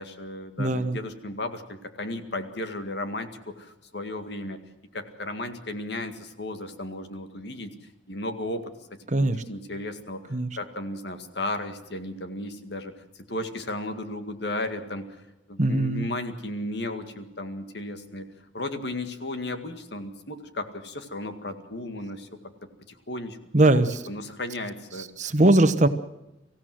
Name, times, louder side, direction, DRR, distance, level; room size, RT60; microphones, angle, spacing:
voice 1, 0.0-3.3 3.6-4.6 4.9-7.7 8.1-8.6 9.2-12.9 13.3-15.2 15.5-18.3 18.5-22.3 22.9-23.4 23.8-25.1, left 1 dB, 60° left, 8 dB, 2.0 m, -34 dB
voice 2, 0.6-1.0 9.1-9.4 10.3-10.5 15.6-16.1 23.5-24.0 25.0-25.9, right 2 dB, 40° right, 11 dB, 1.1 m, -21 dB
25.0 x 16.0 x 7.8 m, 0.92 s
head